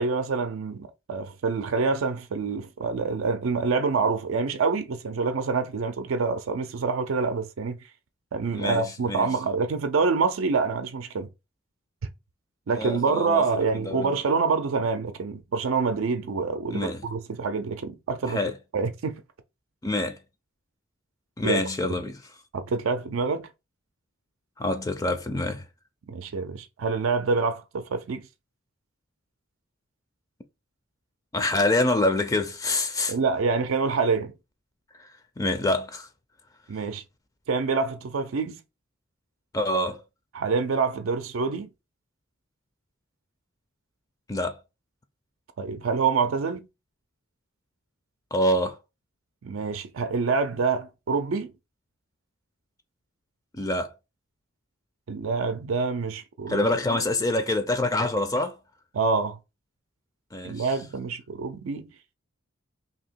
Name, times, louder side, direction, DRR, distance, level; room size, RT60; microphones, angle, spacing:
voice 1, 0.0-7.8 8.3-11.3 12.7-18.4 18.7-19.2 21.4-21.6 22.5-23.5 26.1-28.3 33.1-34.3 36.7-37.0 37.5-38.6 40.3-41.7 45.6-46.7 49.4-51.5 55.1-57.0 58.9-59.4 60.4-61.9, right 4 dB, 85° right, 0.4 m, -26 dB
voice 2, 8.5-9.3 12.7-13.4 13.7-14.1 16.7-17.0 18.3-18.6 19.8-20.2 21.4-22.2 24.6-25.7 31.3-33.2 35.0-36.1 39.5-40.0 44.3-44.6 48.3-48.8 53.5-53.9 56.5-58.6 60.3-60.7, left 1 dB, 15° left, 0.4 m, -26 dB
2.8 x 2.8 x 4.3 m
head